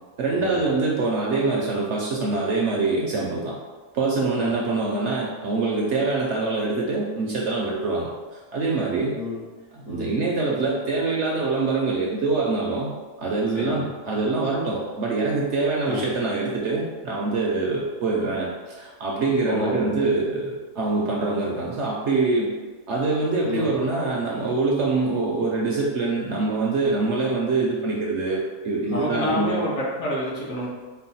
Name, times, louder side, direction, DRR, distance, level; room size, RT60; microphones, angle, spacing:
voice 1, 0.2-3.5 3.9-8.1 8.3-9.1 9.7-12.9 13.2-22.5 22.9-29.6, right 3 dB, 65° right, -3 dB, 0.8 m, -24 dB
voice 2, 4.3-4.7 9.1-9.4 9.8-10.1 13.5-13.9 15.8-16.0 19.4-19.9 23.4-23.7 28.8-30.7, left 1 dB, 65° left, -6 dB, 1.4 m, -28 dB
4.4 x 2.1 x 4.0 m, 1.4 s
omnidirectional pair, 1.6 m